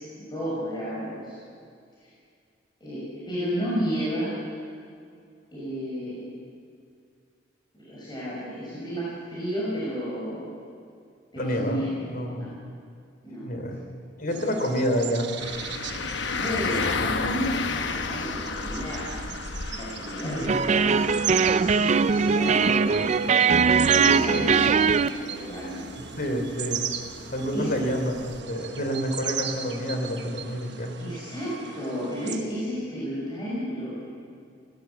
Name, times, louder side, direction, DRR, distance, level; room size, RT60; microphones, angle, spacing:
voice 1, 0.2-1.4 2.0-2.1 2.8-4.3 5.5-6.2 7.7-10.6 11.3-12.1 12.3-12.5 13.2-13.4 16.3-19.1 19.7-21.2 21.5-25.8 27.5-27.7 31.0-34.1, equal, 25° left, -8 dB, 6.0 m, -32 dB
voice 2, 11.3-12.5 13.4-13.8 14.2-15.3 20.2-20.5 26.2-26.9 27.3-30.9, equal, 55° left, 5 dB, 3.2 m, -28 dB
sound 1, 14.3-32.4, right 8 dB, 70° right, 1.3 m, -37 dB
sound 2, 15.4-28.4, left 4 dB, 75° left, 1.1 m, -34 dB
sound 3, 20.5-25.1, right 5 dB, 40° right, 0.4 m, -21 dB
18.5 x 18.0 x 8.3 m, 2.3 s
head